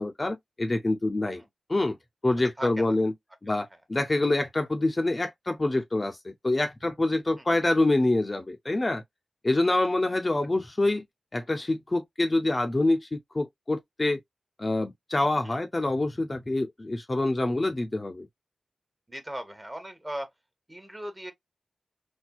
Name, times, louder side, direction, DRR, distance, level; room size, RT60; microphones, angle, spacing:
voice 1, 0.0-1.4 1.7-2.0 2.2-3.1 3.4-9.0 9.4-11.0 11.3-14.2 14.6-18.3, left 2 dB, 30° left, 0.5 m, -26 dB
voice 2, 2.6-3.0 7.4-7.5 15.4-15.6 19.1-20.3 20.7-21.3, right 1 dB, 15° right, 1.0 m, -38 dB
4.2 x 2.2 x 2.3 m
wide cardioid pair, 75°, 0 cm